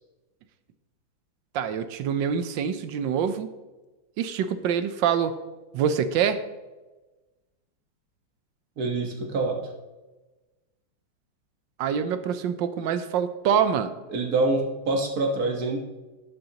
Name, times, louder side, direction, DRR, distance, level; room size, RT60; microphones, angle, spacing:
voice 1, 1.5-3.5 4.2-5.3 5.7-6.4 11.8-13.9, right 8 dB, 75° right, 11 dB, 1.4 m, -25 dB
voice 2, 8.8-9.7 14.1-15.8, right 2 dB, 50° right, 2 dB, 1.8 m, -26 dB
12.0 x 9.2 x 2.9 m, 1.2 s
omnidirectional pair, 2.1 m